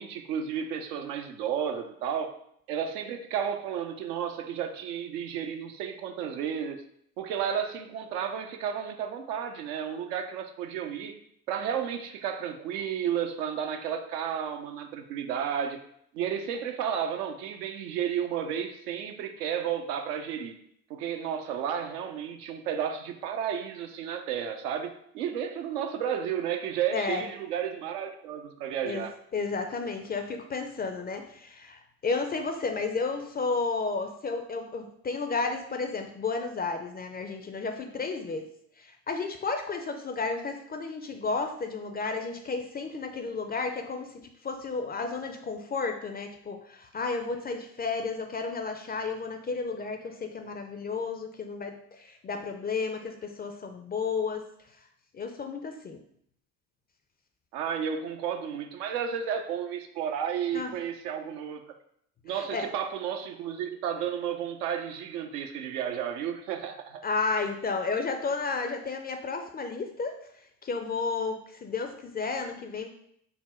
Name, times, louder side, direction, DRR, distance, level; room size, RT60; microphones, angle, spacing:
voice 1, 0.0-2.4 2.7-6.8 7.2-11.1 11.5-15.8 16.1-20.6 20.9-29.1 57.5-61.6 62.2-67.1, right 8 dB, 75° right, 6 dB, 0.6 m, -32 dB
voice 2, 26.9-27.3 28.8-29.0 29.3-38.5 38.8-54.4 55.1-56.0 60.5-60.7 62.3-62.7 67.0-70.2 70.6-72.9, left 4 dB, 20° left, 5 dB, 0.4 m, -32 dB
4.1 x 2.1 x 4.2 m, 0.69 s
hypercardioid pair, 55°, 47 cm